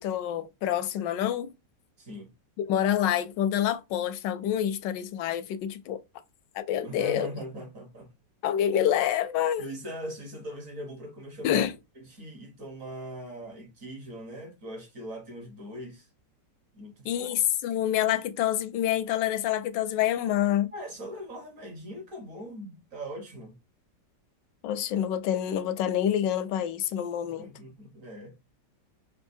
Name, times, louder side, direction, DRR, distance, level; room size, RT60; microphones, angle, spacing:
voice 1, 0.0-1.5 2.6-6.0 6.5-7.3 8.4-9.7 11.4-11.7 17.0-20.7 24.6-27.5, left 11 dB, 80° left, 1.2 m, -27 dB
voice 2, 2.0-2.3 6.8-8.1 9.6-11.7 12.0-16.1 16.7-17.4 20.7-23.6 27.4-28.3, right 1 dB, 50° right, 1.4 m, -41 dB
5.4 x 2.7 x 2.6 m
omnidirectional pair, 1.9 m